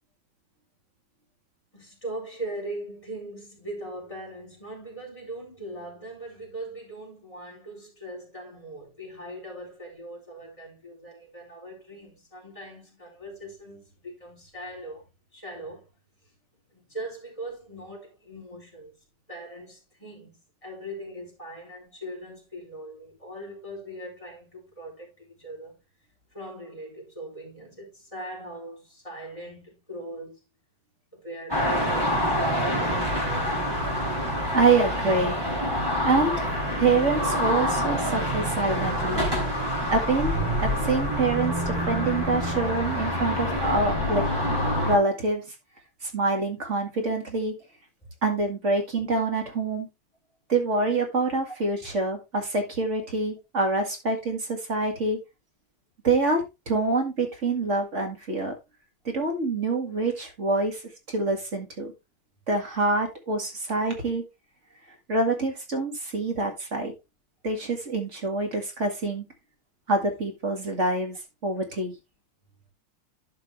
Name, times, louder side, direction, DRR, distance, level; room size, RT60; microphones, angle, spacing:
voice 1, 1.7-15.9 16.7-19.0 19.3-25.8 26.3-30.4 31.1-33.0 48.0-48.1, right 1 dB, 15° left, 3.9 m, -40 dB
sound 1, 31.5-45.0, equal, 10° right, 3.0 m, -26 dB
voice 2, 34.5-35.4 36.0-36.5 36.8-39.3 39.9-40.3 40.6-44.2 44.8-45.4 46.0-47.6 48.2-49.9 50.5-55.2 56.0-58.5 59.0-60.8 61.1-61.9 62.5-64.2 65.1-66.9 67.4-69.3 69.9-72.0, right 3 dB, 35° right, 2.2 m, -26 dB
12.0 x 5.2 x 3.1 m
omnidirectional pair, 2.2 m